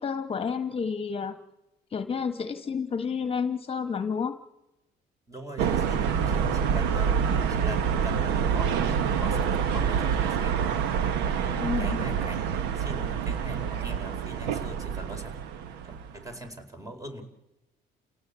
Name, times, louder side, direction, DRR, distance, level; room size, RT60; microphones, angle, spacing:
voice 1, 0.0-1.4 1.9-4.4 11.5-12.0, left 6 dB, 35° left, 10 dB, 1.3 m, -30 dB
voice 2, 5.3-7.2 7.5-10.8 11.8-12.4 12.7-15.4 15.8-17.2, right 1 dB, 20° right, 5 dB, 4.4 m, -41 dB
sound 1, 5.6-16.3, right 7 dB, 90° right, 1.2 m, -27 dB
29.5 x 17.5 x 8.2 m, 0.96 s
cardioid pair, 110°, 17 cm